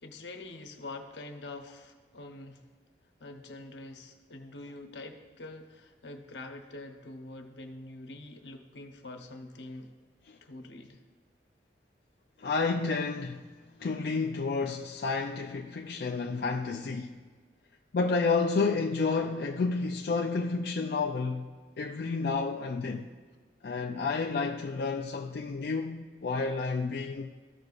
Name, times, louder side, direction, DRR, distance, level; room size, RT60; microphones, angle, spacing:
voice 1, 0.0-2.6 3.2-9.9 10.4-11.0, left 2 dB, 85° left, 0.9 m, -45 dB
voice 2, 12.4-13.4 13.8-17.2 17.9-21.5 21.8-23.1 23.6-27.3, left 4 dB, 60° left, 0.4 m, -30 dB
14.0 x 6.6 x 2.4 m
head